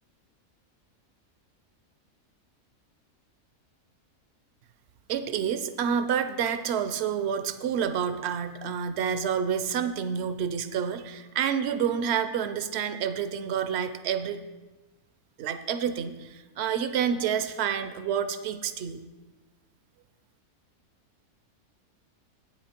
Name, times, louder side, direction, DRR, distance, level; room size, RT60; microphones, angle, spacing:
voice 1, 5.1-14.4 15.4-19.0, right 8 dB, 60° right, 10 dB, 0.7 m, -28 dB
8.8 x 8.7 x 4.4 m, 1.2 s
omnidirectional pair, 1.5 m